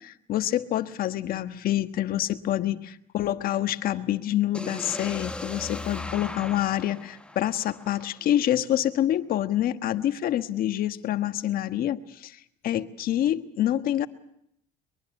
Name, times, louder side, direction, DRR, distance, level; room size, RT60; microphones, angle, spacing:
voice 1, 0.0-12.4 12.6-14.1, left 12 dB, 60° left, 10 dB, 1.4 m, -27 dB
sound 1, 4.5-8.5, left 2 dB, 5° left, 1.6 m, -38 dB
23.0 x 22.5 x 7.2 m, 0.74 s
cardioid pair, 110°, 17 cm